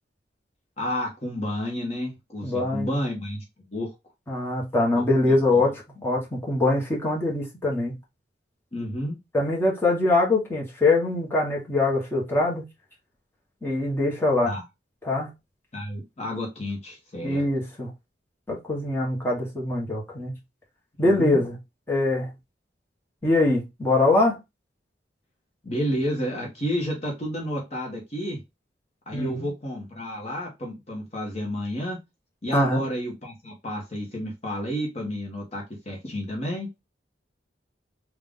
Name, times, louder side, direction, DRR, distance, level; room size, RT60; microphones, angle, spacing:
voice 1, 0.8-3.9 5.0-5.6 8.7-9.2 14.4-14.6 15.7-17.4 21.0-21.4 25.6-28.4 29.1-32.0 32.4-36.7, equal, 35° left, 1.1 m, -31 dB
voice 2, 2.4-3.0 4.3-7.9 9.3-12.6 13.6-14.5 15.0-15.3 17.2-17.9 18.5-20.3 21.0-21.6 21.9-22.3 23.2-24.4 29.1-29.5 32.5-32.8, left 2 dB, 15° left, 1.2 m, -23 dB
3.7 x 2.4 x 3.6 m
head